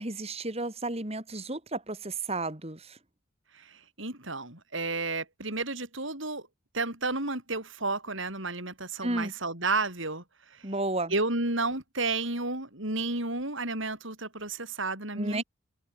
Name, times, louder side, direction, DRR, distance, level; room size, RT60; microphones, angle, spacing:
voice 1, 0.0-3.0 9.0-9.3 10.6-11.1 15.2-15.4, right 2 dB, 30° right, 2.5 m, -32 dB
voice 2, 4.0-6.4 6.7-10.2 11.1-15.4, right 3 dB, 65° right, 7.8 m, -31 dB
head